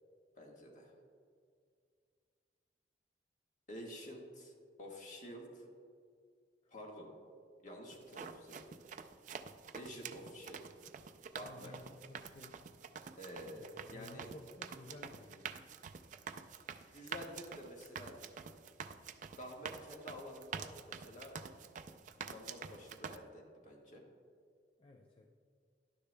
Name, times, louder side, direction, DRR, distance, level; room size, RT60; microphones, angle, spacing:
voice 1, 0.3-0.9 3.7-4.5 4.8-5.6 6.7-7.1 7.6-8.8 9.7-10.7 11.3-11.7 13.2-14.3 16.8-18.2 19.3-21.4 22.2-24.0, equal, 45° left, -1 dB, 1.5 m, -50 dB
sound 1, 7.9-23.2, right 6 dB, 45° right, 0.4 m, -48 dB
voice 2, 10.2-10.5 11.4-12.7 13.6-15.5 24.8-25.3, left 2 dB, 30° left, 1 dB, 0.5 m, -55 dB
11.5 x 9.9 x 2.2 m, 2.2 s
head